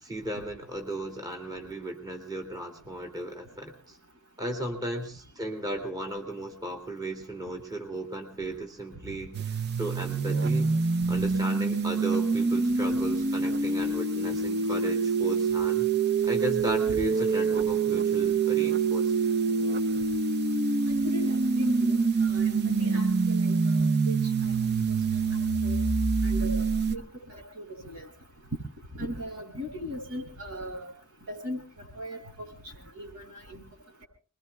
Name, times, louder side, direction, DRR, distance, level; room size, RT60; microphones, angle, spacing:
voice 1, 0.0-4.0 4.4-9.3 9.8-10.7 11.1-15.9 16.2-19.1, right 1 dB, 20° right, 3 dB, 2.5 m, -35 dB
sound 1, 9.3-27.0, right 4 dB, 50° right, 0.7 m, -26 dB
voice 2, 21.0-24.2 24.4-25.8 26.2-28.1 28.9-30.9 31.3-32.5 32.9-33.6, left 1 dB, 85° right, 1 dB, 7.4 m, -39 dB
28.5 x 21.5 x 2.3 m, 0.39 s
head